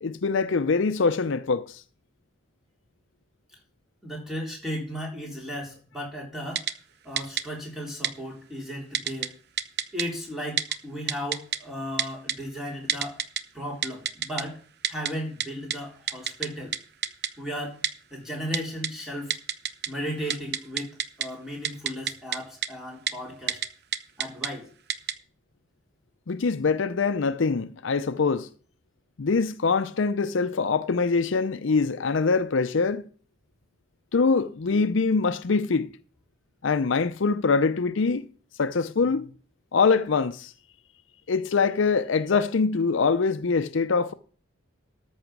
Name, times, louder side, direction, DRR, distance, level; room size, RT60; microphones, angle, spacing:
voice 1, 0.0-1.8 26.3-28.5 29.2-33.1 34.1-35.9 36.6-38.3 38.6-39.3 39.7-40.5 41.3-44.1, left 4 dB, 65° left, 0.5 m, -24 dB
voice 2, 4.0-6.7 7.0-9.4 9.9-13.2 13.5-14.6 14.9-16.7 17.4-17.8 18.1-19.4 19.9-23.6 24.2-24.7, equal, ahead, 3.8 m, -35 dB
Typing, 6.6-6.7 7.2-7.4 8.0-8.1 8.9-9.3 9.6-10.0 10.6-10.8 11.1-11.6 12.0-12.3 12.9-13.4 13.8-14.4 14.8-15.1 15.4-15.5 15.7-15.8 16.1-16.5 16.7-16.8 17.0-17.3 17.8-17.9 18.5-18.9 19.3-19.9 20.2-21.3 21.6-22.4 22.6-22.7 23.1-23.2 23.5-23.7 23.9-24.5 24.9-25.1, right 9 dB, 50° right, 0.7 m, -27 dB
13.5 x 5.8 x 6.0 m
head